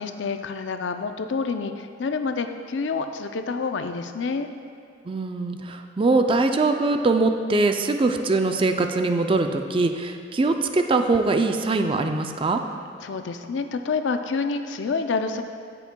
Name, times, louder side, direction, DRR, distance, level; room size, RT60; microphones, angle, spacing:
voice 1, 0.0-4.5 13.0-15.4, left 4 dB, 80° left, 8 dB, 0.4 m, -28 dB
voice 2, 5.1-12.6, right 3 dB, 30° right, 6 dB, 0.4 m, -22 dB
12.5 x 6.9 x 2.2 m, 2.3 s
head